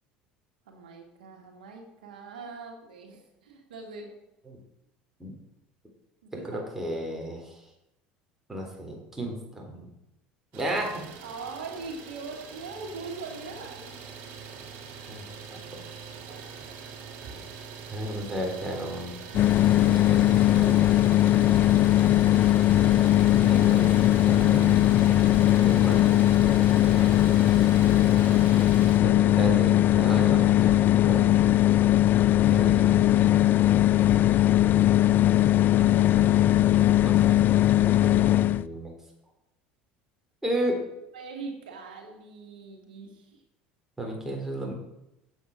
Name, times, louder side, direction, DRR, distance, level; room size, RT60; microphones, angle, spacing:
voice 1, 0.7-4.2 6.2-6.7 11.2-13.9 15.0-15.4 35.6-36.8 41.1-43.4, right 4 dB, 90° right, 3 dB, 1.8 m, -42 dB
voice 2, 6.5-7.6 8.5-9.9 10.5-11.0 15.1-15.8 17.9-19.1 19.8-20.8 22.9-23.9 24.3-24.9 25.6-27.4 29.0-31.5 32.5-33.4 36.1-36.2 37.0-37.2 38.0-38.9 40.4-40.8 44.0-44.7, right 1 dB, 10° right, 0 dB, 3.8 m, -34 dB
Idling, 10.5-29.0, right 6 dB, 65° right, 2.5 m, -43 dB
sound 1, 19.3-38.6, left 13 dB, 45° left, 0.4 m, -20 dB
8.1 x 8.1 x 6.2 m, 0.90 s
hypercardioid pair, 85°, 4 cm